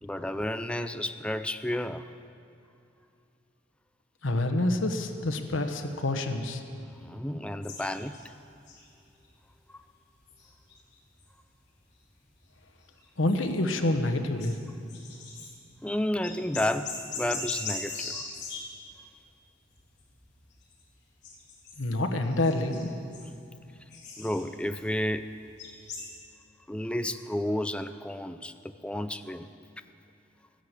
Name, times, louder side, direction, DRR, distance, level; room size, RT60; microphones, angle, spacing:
voice 1, 0.0-2.0 7.0-8.2 9.7-9.8 15.8-18.2 24.2-25.3 26.7-29.5, left 1 dB, 5° left, 10 dB, 0.4 m, -31 dB
voice 2, 4.2-6.6 13.2-14.6 21.8-22.9, left 2 dB, 85° left, 6 dB, 1.2 m, -27 dB
sound 1, 7.6-9.4 10.2-11.3 11.5-11.9 12.3-12.5 13.0-13.7 14.0-15.8 16.1-19.0 19.7-20.3 20.6-20.8 21.2-22.0 22.2-24.9 25.3-26.2, left 4 dB, 60° left, 3.6 m, -40 dB
14.0 x 10.5 x 8.1 m, 2.6 s
head